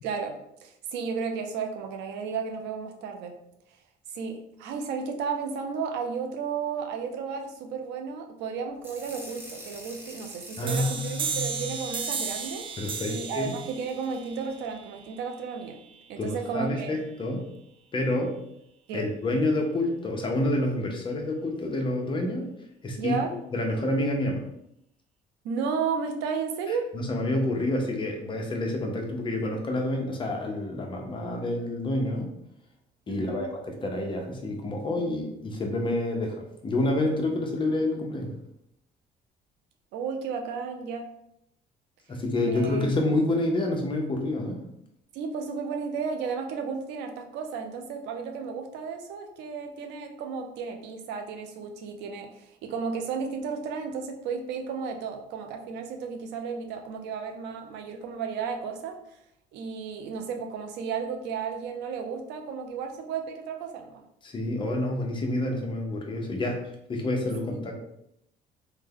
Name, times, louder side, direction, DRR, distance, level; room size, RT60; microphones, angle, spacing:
voice 1, 0.0-3.3 4.1-12.7 13.1-15.8 16.1-17.0 18.9-19.1 23.0-23.3 25.4-26.9 33.1-33.5 39.9-41.1 42.5-42.9 45.1-59.0 59.5-64.0 67.5-67.6, right 5 dB, 90° right, 4 dB, 0.5 m, -33 dB
sound 1, 8.8-14.6, right 1 dB, 15° right, 1.0 m, -47 dB
voice 2, 10.6-11.7 12.8-13.5 16.2-17.5 17.9-18.4 18.9-22.5 22.8-23.2 23.5-24.5 26.9-32.3 33.1-38.3 42.1-44.6 64.2-66.6 66.9-67.7, left 1 dB, 30° left, 1 dB, 0.8 m, -28 dB
sound 2, 10.7-16.1, right 5 dB, 30° right, 0.3 m, -35 dB
3.4 x 2.2 x 3.6 m, 0.77 s
cardioid pair, 110°, 17 cm